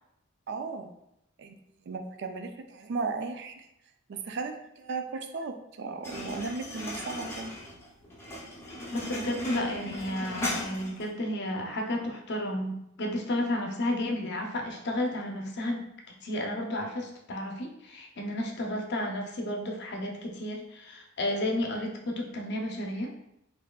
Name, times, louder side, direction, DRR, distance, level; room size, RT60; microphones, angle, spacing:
voice 1, 0.5-0.9 1.4-1.5 1.9-3.7 4.1-7.5, right 4 dB, 50° right, 6 dB, 0.4 m, -36 dB
sound 1, 6.0-11.1, left 1 dB, 10° left, 0.6 m, -37 dB
voice 2, 8.9-15.9 16.2-23.1, left 1 dB, 50° left, 2 dB, 0.6 m, -32 dB
4.3 x 2.7 x 2.3 m, 0.82 s
head